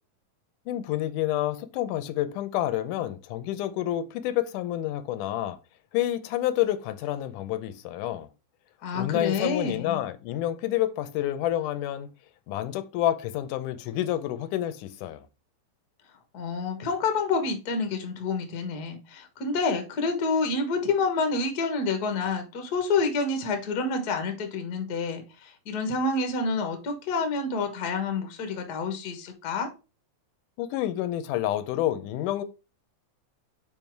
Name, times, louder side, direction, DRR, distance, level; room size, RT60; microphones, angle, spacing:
voice 1, 0.7-5.6 5.9-8.3 8.9-12.1 12.5-15.3 30.6-32.4, left 13 dB, 85° left, 2.2 m, -29 dB
voice 2, 8.8-10.0 16.3-29.7, left 4 dB, 50° left, 1.2 m, -28 dB
5.5 x 5.2 x 4.5 m
omnidirectional pair, 3.6 m